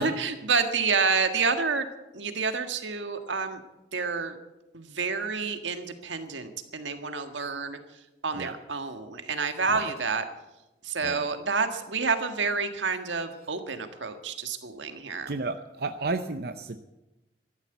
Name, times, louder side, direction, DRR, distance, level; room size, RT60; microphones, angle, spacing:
voice 1, 0.0-1.9 2.1-3.6 3.9-4.4 4.7-7.8 8.2-10.2 10.8-15.3, right 5 dB, 85° right, 7 dB, 1.6 m, -29 dB
voice 2, 15.3-16.8, right 3 dB, 55° right, 8 dB, 0.7 m, -32 dB
13.5 x 11.5 x 8.1 m, 0.99 s
head